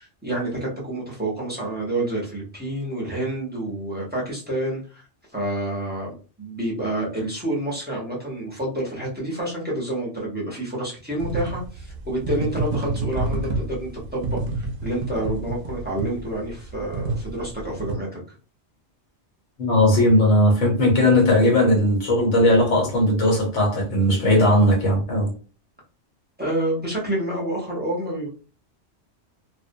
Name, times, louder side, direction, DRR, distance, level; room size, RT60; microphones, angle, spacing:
voice 1, 0.0-5.0 5.3-18.2 26.4-28.3, right 1 dB, 10° right, 0.6 m, -28 dB
sound 1, 11.2-17.9, right 2 dB, 60° right, 0.6 m, -29 dB
voice 2, 19.6-25.3, left 1 dB, 80° left, 1.3 m, -18 dB
2.5 x 2.0 x 2.5 m
omnidirectional pair, 1.2 m